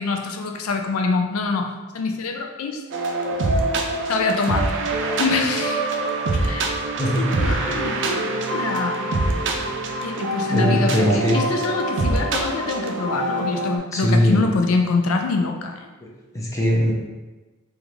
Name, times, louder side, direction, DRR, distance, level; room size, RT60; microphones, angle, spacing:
voice 1, 0.0-2.8 4.1-4.7 5.2-5.9 6.3-6.8 7.2-9.0 10.0-15.8, left 4 dB, 90° left, 4 dB, 0.4 m, -25 dB
sound 1, 2.9-13.8, right 2 dB, 60° right, 0.5 m, -24 dB
sound 2, 3.0-4.4 5.1-7.1 7.4-10.3, right 2 dB, 30° left, 1.1 m, -37 dB
voice 2, 10.5-11.4 13.9-14.4 16.3-16.9, equal, 15° left, -3 dB, 0.7 m, -20 dB
5.0 x 2.5 x 3.0 m, 1.2 s
head